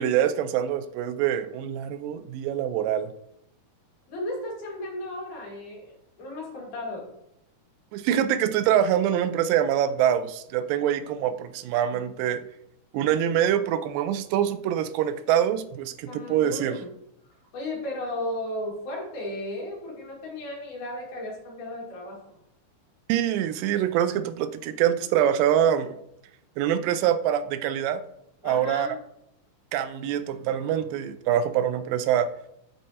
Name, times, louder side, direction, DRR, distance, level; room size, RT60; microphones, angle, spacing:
voice 1, 0.0-3.1 7.9-12.4 12.9-16.8 23.1-26.0 26.6-28.0 28.4-28.9 29.7-32.3, right 10 dB, 85° right, 11 dB, 2.2 m, -25 dB
voice 2, 4.1-7.1 16.1-16.9 17.5-22.4 28.4-29.0, left 1 dB, 70° left, -3 dB, 3.4 m, -35 dB
12.0 x 4.3 x 2.8 m, 0.78 s
omnidirectional pair, 3.8 m